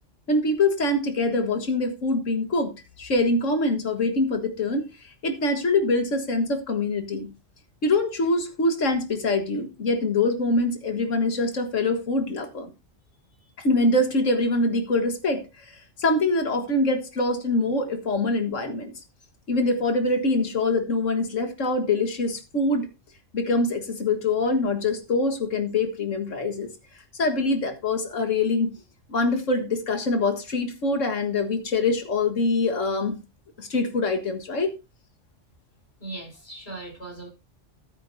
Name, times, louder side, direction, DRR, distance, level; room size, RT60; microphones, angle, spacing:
voice 1, 0.3-2.7 3.0-4.8 5.2-7.3 7.8-12.7 13.6-15.5 16.0-18.9 19.5-22.9 23.3-26.7 27.2-28.7 29.1-33.2 33.6-34.7, left 2 dB, 80° left, 2.0 m, -24 dB
voice 2, 36.0-37.3, right 2 dB, 55° left, 5.6 m, -38 dB
14.0 x 8.6 x 2.7 m
omnidirectional pair, 1.3 m